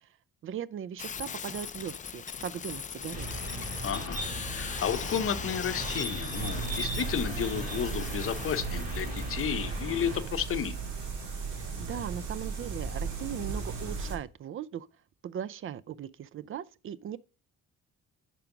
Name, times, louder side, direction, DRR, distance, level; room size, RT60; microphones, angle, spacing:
voice 1, 0.4-3.3 11.5-14.9 15.2-17.2, right 9 dB, 45° right, 0.4 m, -38 dB
sound 1, 1.0-8.6, left 7 dB, 25° left, 0.4 m, -40 dB
sound 2, 3.1-10.2, right 1 dB, 30° right, 3.2 m, -37 dB
voice 2, 3.8-10.8, left 8 dB, 45° left, 0.8 m, -32 dB
sound 3, 6.3-14.2, right 5 dB, 80° right, 2.2 m, -36 dB
5.1 x 4.6 x 5.9 m
cardioid pair, 90°, 30 cm